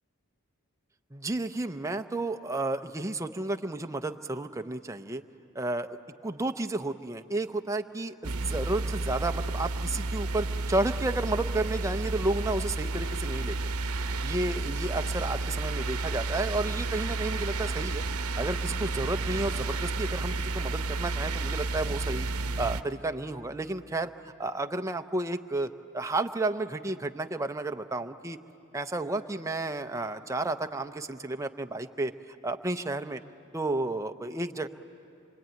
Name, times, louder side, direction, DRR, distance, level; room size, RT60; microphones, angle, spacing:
voice 1, 1.1-5.2 5.5-5.9 6.2-13.6 14.2-18.0 18.4-22.3 22.6-24.1 24.4-28.4 28.7-33.2 33.5-34.7, right 2 dB, 15° right, 6 dB, 0.6 m, -32 dB
sound 1, 8.2-22.8, right 3 dB, 80° right, 0.8 m, -31 dB
26.0 x 24.0 x 9.1 m, 2.7 s
head